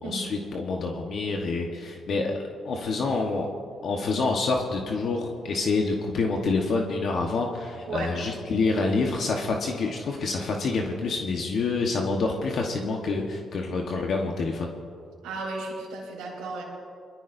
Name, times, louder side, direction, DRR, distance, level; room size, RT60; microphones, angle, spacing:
voice 1, 0.0-2.4 2.6-3.5 3.8-14.7, left 3 dB, 60° left, 1 dB, 1.2 m, -27 dB
voice 2, 7.9-8.2 13.6-13.7 15.2-16.6, right 3 dB, 90° right, -6 dB, 3.5 m, -34 dB
22.5 x 13.5 x 2.7 m, 2.3 s
cardioid pair, 90°, 0 cm